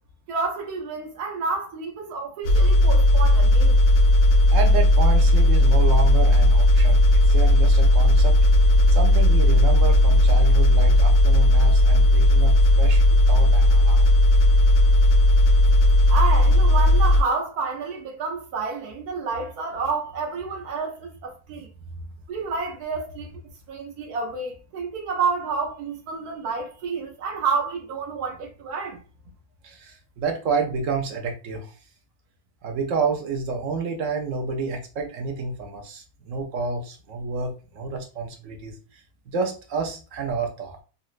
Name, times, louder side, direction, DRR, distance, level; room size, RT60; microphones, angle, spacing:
voice 1, 0.3-3.8 16.1-21.7 22.3-23.3 23.7-29.0, right 4 dB, 85° right, 1.2 m, -29 dB
sound 1, 2.4-17.2, left 1 dB, 80° left, 1.1 m, -16 dB
voice 2, 4.5-8.4 8.9-14.0 29.6-31.7 32.6-40.8, right 4 dB, 70° right, 0.8 m, -29 dB
3.8 x 2.0 x 2.4 m
omnidirectional pair, 1.6 m